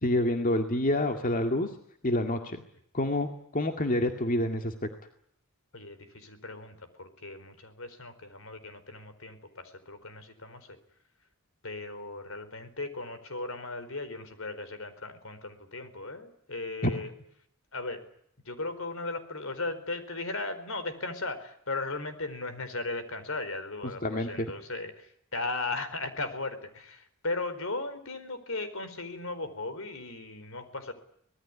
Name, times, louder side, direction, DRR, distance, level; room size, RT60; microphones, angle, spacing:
voice 1, 0.0-1.7 2.0-2.6 2.9-4.7 16.8-16.9 24.0-24.5, left 1 dB, 40° left, 5 dB, 2.1 m, -27 dB
voice 2, 5.7-10.8 11.6-17.1 17.7-18.1 18.4-30.9, left 2 dB, 70° left, 11 dB, 4.5 m, -37 dB
25.0 x 19.5 x 9.7 m, 0.69 s
head